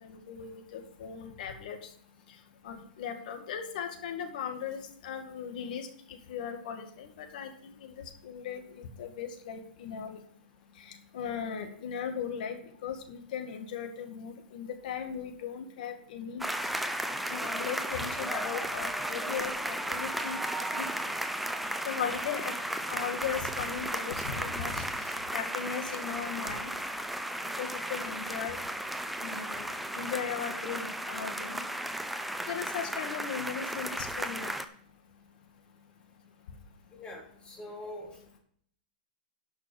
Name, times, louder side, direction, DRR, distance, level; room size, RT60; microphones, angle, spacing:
voice 1, 0.0-1.8 2.6-10.2 10.8-16.4 17.3-20.4 20.7-20.9 21.9-22.5 22.9-26.7 27.4-28.6 29.2-31.6 32.5-34.5, left 7 dB, 65° left, 6 dB, 2.1 m, -38 dB
sound 1, 16.4-34.7, right 1 dB, ahead, 0.6 m, -35 dB
voice 2, 36.9-38.1, left 1 dB, 20° left, -1 dB, 3.3 m, -43 dB
12.0 x 5.9 x 5.5 m, 0.62 s
hypercardioid pair, 145°, 5 cm